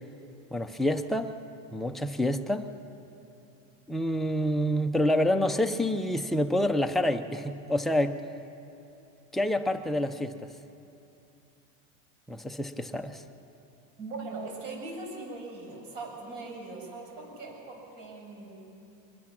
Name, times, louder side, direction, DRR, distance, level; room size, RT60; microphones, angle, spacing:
voice 1, 0.5-1.3 1.7-2.7 3.9-8.2 9.3-10.5 12.3-13.2, left 1 dB, ahead, 4 dB, 0.5 m, -27 dB
voice 2, 14.0-18.7, right 3 dB, 55° right, 0 dB, 7.0 m, -40 dB
24.0 x 21.0 x 6.0 m, 2.8 s
supercardioid pair, 150°, 40 cm